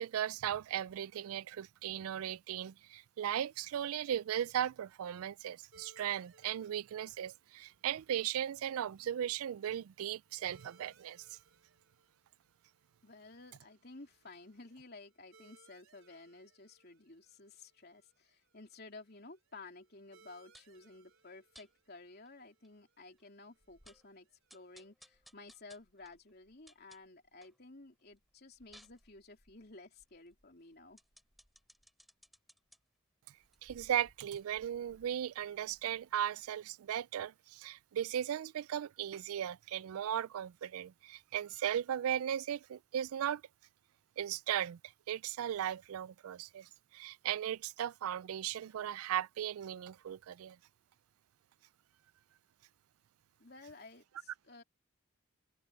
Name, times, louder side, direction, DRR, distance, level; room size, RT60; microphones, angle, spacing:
voice 1, 0.0-11.4 33.6-43.4 44.2-44.8 45.1-50.6, right 10 dB, 85° right, 0.3 m, -37 dB
sound 1, 5.7-24.9, right 4 dB, 70° right, 4.1 m, -69 dB
voice 2, 13.0-31.0 53.4-54.6, left 3 dB, 45° left, 3.4 m, -54 dB
sound 2, 20.5-20.8 21.5-21.7 22.3-22.4 22.6-22.7 23.2-23.3 23.6-24.1 24.5-27.6 28.0-32.8 33.4-36.1 36.4-36.5, equal, ahead, 6.8 m, -63 dB
open air
head